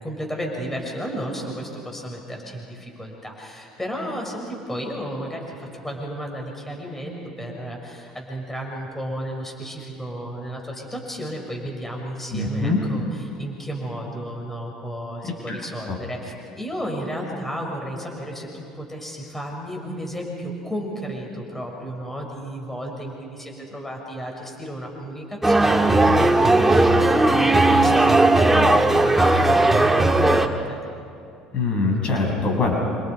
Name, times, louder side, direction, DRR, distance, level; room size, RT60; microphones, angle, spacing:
voice 1, 0.0-26.8 27.1-30.8, equal, 10° left, 0 dB, 6.6 m, -33 dB
voice 2, 12.3-12.8 15.5-15.6 15.9-16.0 31.5-32.7, left 3 dB, 45° left, 1 dB, 6.9 m, -23 dB
sound 1, 25.4-30.5, right 2 dB, 10° right, 2.1 m, -17 dB
28.0 x 26.5 x 5.3 m, 2.5 s
hypercardioid pair, 70°, 2 cm